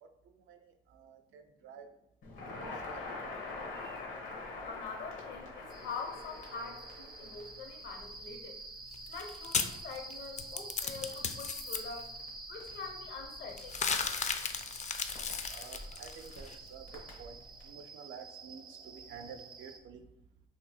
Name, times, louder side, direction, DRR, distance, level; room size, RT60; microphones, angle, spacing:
voice 1, 0.0-1.9 2.4-3.1 15.5-20.0, right 6 dB, 80° right, 7 dB, 0.5 m, -51 dB
Crackle, 2.2-17.7, left 3 dB, 80° left, 1.1 m, -47 dB
voice 2, 4.7-8.6 9.1-12.1 12.5-13.8, left 5 dB, 65° left, 4 dB, 0.8 m, -44 dB
sound 1, 5.7-19.8, right 2 dB, 25° right, 0.4 m, -48 dB
sound 2, 8.9-11.8 13.6-16.6, left 6 dB, 35° left, 0.4 m, -35 dB
2.9 x 2.7 x 4.1 m, 0.78 s
cardioid pair, 90°, 20 cm